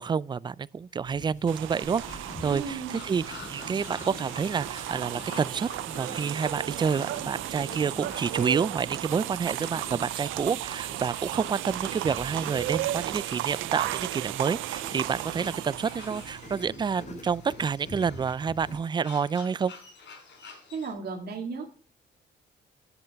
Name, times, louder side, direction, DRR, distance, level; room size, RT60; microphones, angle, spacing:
voice 1, 0.0-19.7, right 6 dB, 25° right, 0.3 m, -29 dB
sound 1, 1.0-18.8, left 1 dB, 35° left, 3.7 m, -45 dB
sound 2, 1.5-16.6, right 16 dB, 85° right, 0.4 m, -35 dB
sound 3, 1.8-20.9, left 5 dB, 70° left, 4.6 m, -50 dB
voice 2, 2.4-3.0 20.7-21.7, right 5 dB, 55° right, 2.0 m, -35 dB
10.5 x 7.8 x 3.5 m
cardioid pair, 90°, 20 cm